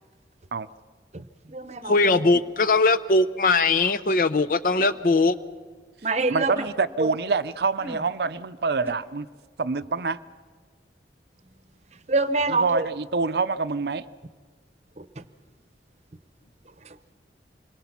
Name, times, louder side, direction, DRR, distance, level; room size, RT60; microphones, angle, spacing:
voice 1, 1.1-2.2 6.0-6.6 7.0-7.1 12.1-12.9 15.0-15.2 16.9-17.0, right 3 dB, 40° right, 12 dB, 0.8 m, -26 dB
voice 2, 1.8-5.3, left 3 dB, 50° left, 14 dB, 0.6 m, -20 dB
sound 1, 3.8-4.0 4.7-5.0 6.5-6.8 7.8-8.1 8.8-8.9, right 1 dB, 15° right, 1.3 m, -39 dB
voice 3, 6.3-9.3 9.6-10.2 12.5-14.0, right 4 dB, 65° right, 13 dB, 0.5 m, -26 dB
27.0 x 21.5 x 5.9 m, 1.5 s
head